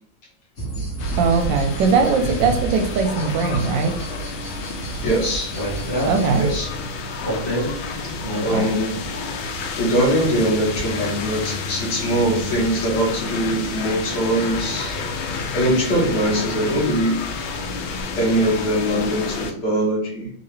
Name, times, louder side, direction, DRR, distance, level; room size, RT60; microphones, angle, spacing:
sound 1, 0.6-6.6, right 3 dB, 35° left, 1.4 m, -31 dB
sound 2, 1.0-19.5, left 4 dB, 75° left, 1.4 m, -30 dB
voice 1, 1.2-4.0 6.0-6.5 8.5-8.7, right 5 dB, 70° right, 5 dB, 1.1 m, -20 dB
sound 3, 1.4-15.0, right 1 dB, 20° left, 1.1 m, -34 dB
voice 2, 5.0-5.5 6.4-6.7 8.4-9.0 9.8-15.0 15.5-17.3 18.1-20.3, right 1 dB, 55° left, -3 dB, 1.7 m, -22 dB
3.8 x 2.8 x 3.1 m, 0.65 s
omnidirectional pair, 2.3 m